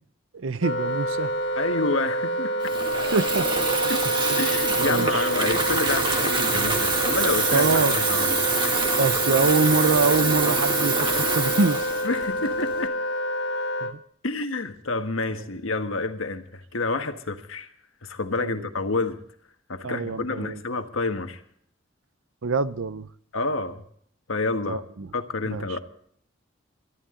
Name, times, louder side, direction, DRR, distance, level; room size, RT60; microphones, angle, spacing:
voice 1, 0.3-1.4 3.0-4.5 4.8-5.3 7.5-8.2 9.0-11.9 13.8-14.0 15.3-15.5 18.4-18.7 19.8-20.6 22.4-23.1 24.7-25.1 25.5-25.8, right 4 dB, 75° right, 0.6 m, -25 dB
Wind instrument woodwind instrument, 0.6-14.0, right 1 dB, 60° left, 1.2 m, -28 dB
voice 2, 1.5-2.6 3.9-4.1 4.4-8.4 12.0-12.9 14.2-17.7 18.0-19.2 19.7-21.4 23.3-23.8 24.3-24.8 25.1-25.8, left 3 dB, 80° left, 1.5 m, -28 dB
Water tap faucet / Fill (with liquid), 2.6-12.9, right 3 dB, 25° right, 2.0 m, -25 dB
22.5 x 13.0 x 3.8 m
head